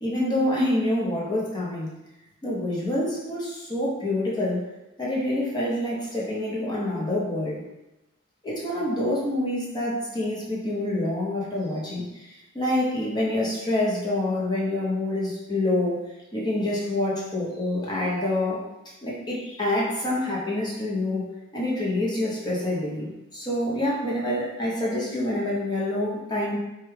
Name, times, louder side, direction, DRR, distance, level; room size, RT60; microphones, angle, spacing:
voice 1, 0.0-1.9 2.4-4.7 5.0-7.6 8.4-16.0 16.3-18.7 19.0-21.3 21.5-26.6, left 1 dB, 20° left, -5 dB, 0.6 m, -27 dB
3.4 x 2.2 x 3.2 m, 0.97 s
head